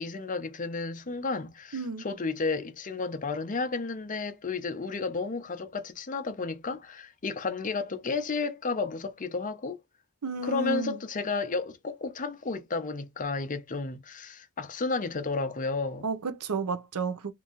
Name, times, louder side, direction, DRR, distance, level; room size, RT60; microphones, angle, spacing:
voice 1, 0.0-9.8 10.4-16.1, left 4 dB, 35° left, 0.6 m, -32 dB
voice 2, 1.7-2.1 10.2-11.0 16.0-17.3, right 3 dB, 85° right, 0.6 m, -31 dB
2.9 x 2.6 x 3.7 m
head